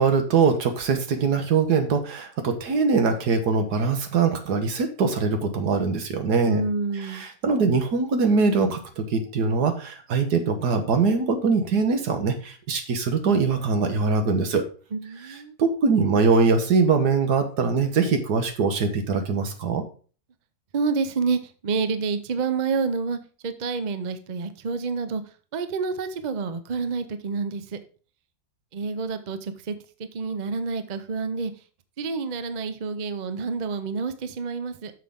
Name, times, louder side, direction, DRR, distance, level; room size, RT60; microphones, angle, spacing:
voice 1, 0.0-6.6 6.9-14.7 15.3-19.8, right 4 dB, 85° right, 7 dB, 1.8 m, -22 dB
voice 2, 6.4-7.2 14.9-15.5 20.7-23.2 23.4-25.2 25.5-27.8 28.7-29.7 30.1-31.5 32.0-34.9, right 4 dB, 40° right, 10 dB, 0.6 m, -28 dB
9.4 x 6.7 x 3.6 m, 0.39 s
omnidirectional pair, 1.7 m